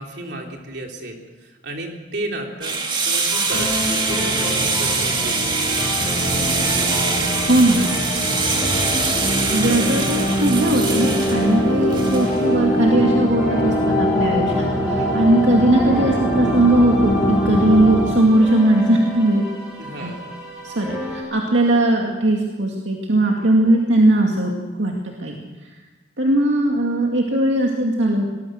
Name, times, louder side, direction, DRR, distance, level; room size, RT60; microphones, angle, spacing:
voice 1, 0.0-5.6 7.7-7.9 8.3-8.5 14.9-15.1 19.8-20.3 23.4-23.7, right 1 dB, 55° right, 1 dB, 3.7 m, -33 dB
sound 1, 2.6-12.6, right 4 dB, 25° right, 2.2 m, -23 dB
sound 2, 3.3-21.2, equal, 5° right, 6.3 m, -31 dB
sound 3, 4.1-18.1, equal, 10° left, 4.9 m, -23 dB
voice 2, 7.5-7.8 9.5-19.4 20.0-20.1 20.6-24.5 24.8-24.9 25.2-25.3 26.2-28.3, right 1 dB, 75° right, 0 dB, 2.3 m, -18 dB
23.0 x 19.5 x 6.5 m, 1.2 s
head